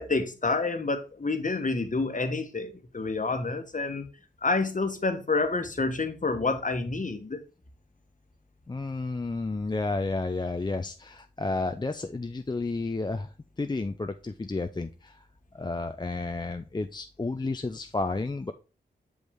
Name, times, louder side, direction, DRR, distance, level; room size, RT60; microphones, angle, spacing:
voice 1, 0.0-4.0 4.4-7.4, left 3 dB, 40° left, 1.2 m, -28 dB
voice 2, 8.7-15.2 15.5-18.5, left 3 dB, 20° left, 0.5 m, -31 dB
6.2 x 5.2 x 3.5 m
cardioid pair, 45°, 19 cm